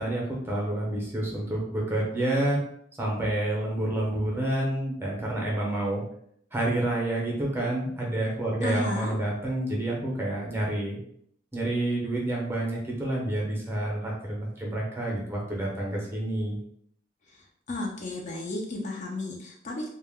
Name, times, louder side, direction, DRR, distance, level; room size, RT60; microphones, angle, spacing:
voice 1, 0.0-2.6 3.0-6.0 6.5-11.0 11.5-16.6, right 1 dB, 15° right, -3 dB, 0.6 m, -28 dB
voice 2, 8.6-9.1 17.7-19.9, left 2 dB, 40° left, -1 dB, 0.4 m, -33 dB
2.2 x 2.0 x 3.4 m, 0.68 s
head